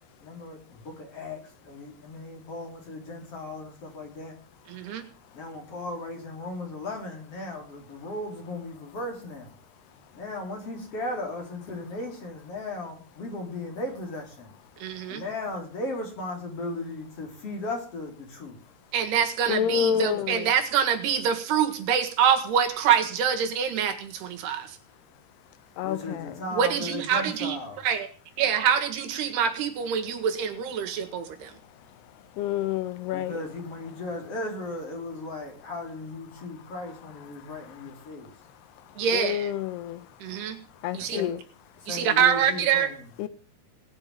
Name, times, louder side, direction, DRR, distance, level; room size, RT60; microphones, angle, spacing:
voice 1, 0.2-4.4 5.3-9.5 10.1-14.5 15.1-18.6 25.8-27.8 33.1-38.3 41.0-41.3 41.8-43.1, left 2 dB, 40° left, 4.5 m, -36 dB
voice 2, 4.7-5.0 14.8-15.2 18.9-24.8 26.5-27.6 27.8-28.1 28.4-31.5 39.0-39.5 40.2-40.6 40.9-41.2 41.9-42.9, right 8 dB, 90° right, 3.8 m, -25 dB
voice 3, 19.5-20.4 25.8-26.0 32.4-33.3 39.1-40.0 40.8-41.4 43.2-43.3, left 10 dB, 85° left, 3.2 m, -28 dB
18.5 x 6.8 x 9.2 m
omnidirectional pair, 4.6 m